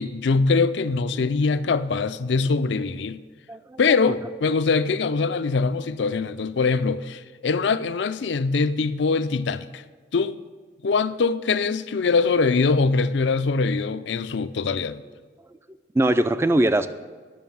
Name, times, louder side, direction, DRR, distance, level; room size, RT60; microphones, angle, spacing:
voice 1, 0.0-3.2 3.8-9.8 10.1-10.4 10.8-15.0, left 4 dB, 75° left, 0.5 m, -23 dB
voice 2, 3.5-3.8 4.1-4.2 15.9-16.9, right 1 dB, 15° right, 0.3 m, -21 dB
11.0 x 6.2 x 7.2 m
head